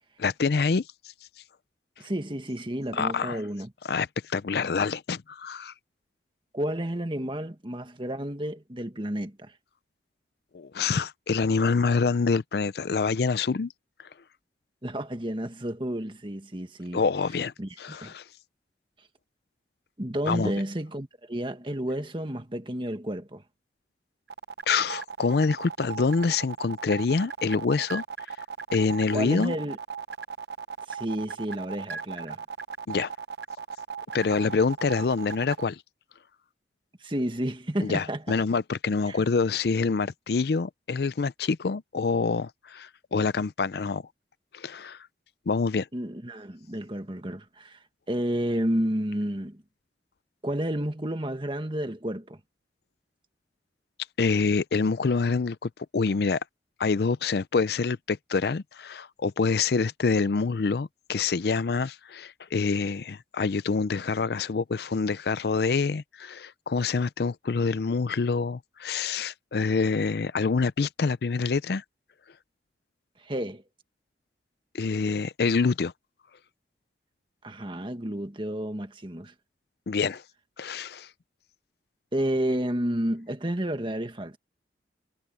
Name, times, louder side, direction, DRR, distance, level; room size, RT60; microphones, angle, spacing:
voice 1, 0.2-0.8 2.9-3.4 3.9-5.7 10.5-13.7 16.9-18.2 20.3-20.5 24.7-28.0 28.7-29.5 32.9-33.1 34.1-35.8 37.8-44.0 44.5-45.0 45.5-45.9 54.2-56.4 56.8-71.8 74.7-75.9 79.9-80.2 80.6-81.1, left 4 dB, 60° left, 0.5 m, -26 dB
voice 2, 2.0-3.7 6.5-9.5 14.8-17.0 17.6-18.1 20.0-23.4 29.1-29.8 30.9-32.4 37.0-38.2 39.1-39.2 45.9-47.8 48.1-49.6 50.4-52.4 73.2-73.6 77.4-79.3 82.1-84.4, right 1 dB, 30° right, 1.6 m, -31 dB
sound 1, 24.3-35.6, right 6 dB, 65° right, 0.9 m, -37 dB
head